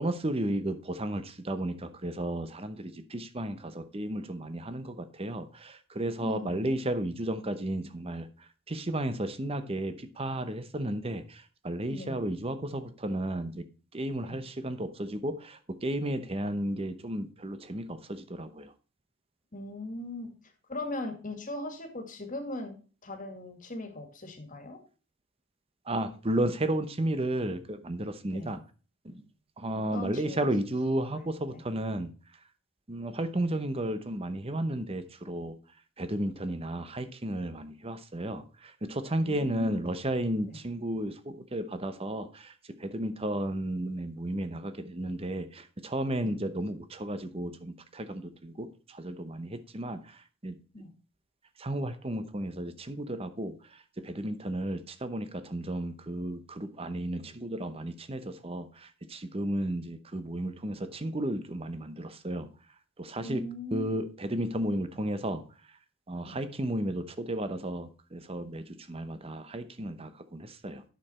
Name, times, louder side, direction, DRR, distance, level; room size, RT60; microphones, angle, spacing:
voice 1, 0.0-8.3 8.7-13.7 13.9-18.7 25.9-28.6 29.0-29.2 29.6-32.1 32.9-35.6 36.0-50.6 51.6-62.5 63.0-63.4 63.7-65.4 66.1-70.8, right 1 dB, 25° right, 0.8 m, -33 dB
voice 2, 6.2-6.8 11.9-12.2 14.2-14.4 19.5-20.3 20.7-22.8 23.0-24.8 28.3-28.5 29.9-30.5 31.1-31.2 31.5-31.6 39.2-40.0 40.4-40.6 46.2-46.4 50.7-50.9 63.2-63.9 66.2-66.4, left 1 dB, 35° left, 2.0 m, -39 dB
9.3 x 6.8 x 4.3 m
head